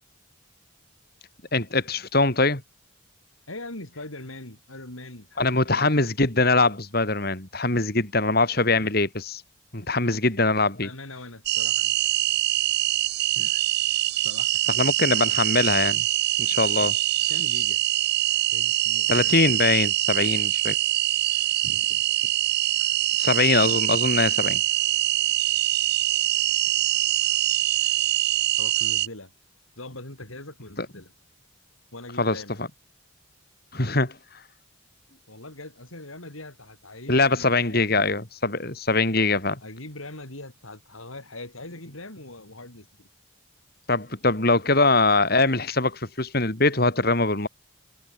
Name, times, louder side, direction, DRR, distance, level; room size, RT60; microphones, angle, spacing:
voice 1, 1.5-2.6 5.4-9.4 9.7-10.9 14.8-16.0 16.4-16.9 19.1-20.8 23.2-24.6 30.8-30.9 32.2-32.7 33.7-34.2 37.1-39.6 43.9-47.5, left 3 dB, 50° left, 3.4 m, -22 dB
voice 2, 3.5-5.9 10.1-10.3 10.8-12.0 13.4-13.6 14.2-14.6 16.8-16.9 17.3-17.8 18.5-19.3 21.6-22.0 28.6-29.3 29.8-31.1 31.9-32.6 35.3-38.1 39.6-43.1, left 2 dB, 85° left, 7.4 m, -42 dB
sound 1, 11.5-29.1, right 15 dB, 50° right, 0.6 m, -24 dB
head